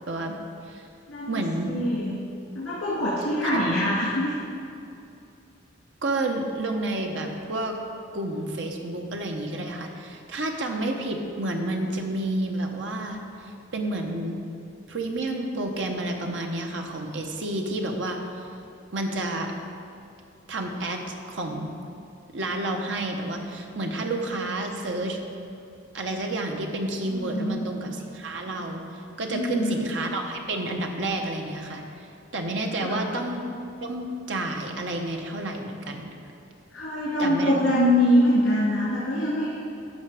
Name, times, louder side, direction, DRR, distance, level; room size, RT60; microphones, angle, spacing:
voice 1, 0.1-0.4 0.7-0.8 1.3-1.7 3.4-3.6 6.0-7.8 8.1-14.4 14.9-18.2 18.9-19.5 20.5-21.7 22.3-25.2 25.9-33.4 33.8-36.1 37.2-37.8, right 2 dB, 70° right, 2 dB, 1.0 m, -30 dB
voice 2, 1.1-1.4 1.7-2.1 2.5-4.3 27.1-27.7 29.3-29.8 32.8-33.1 36.7-39.5, left 1 dB, 85° left, -9 dB, 2.4 m, -24 dB
13.5 x 5.6 x 4.9 m, 2.6 s
head